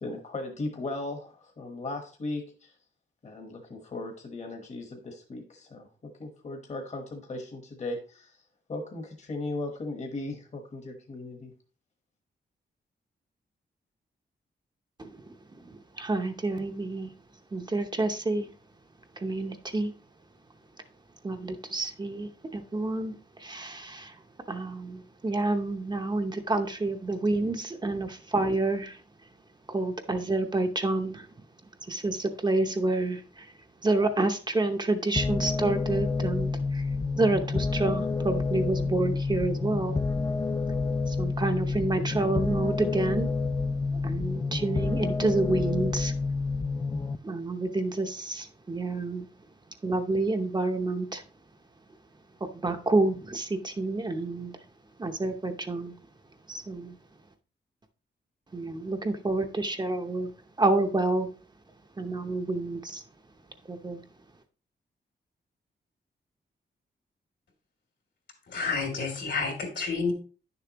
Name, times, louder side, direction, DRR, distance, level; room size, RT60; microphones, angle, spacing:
voice 1, 0.0-2.8 3.2-8.4 8.7-11.5, left 2 dB, 40° left, 3 dB, 1.2 m, -37 dB
voice 2, 15.6-17.1 17.5-18.5 19.2-19.9 21.2-24.1 24.5-29.0 29.7-31.3 31.9-33.5 33.8-36.9 37.2-40.0 41.1-43.3 43.9-46.2 47.2-49.3 49.8-51.2 52.4-54.6 55.0-55.9 56.5-56.9 58.5-60.3 60.6-61.3 62.0-63.0 63.7-64.0, right 2 dB, 25° right, 5 dB, 0.7 m, -29 dB
sound 1, 35.2-47.2, left 4 dB, 20° left, 0.3 m, -29 dB
voice 3, 68.5-70.1, left 4 dB, 70° left, 2 dB, 2.9 m, -29 dB
10.5 x 6.8 x 2.9 m, 0.37 s
wide cardioid pair, 140°, 19 cm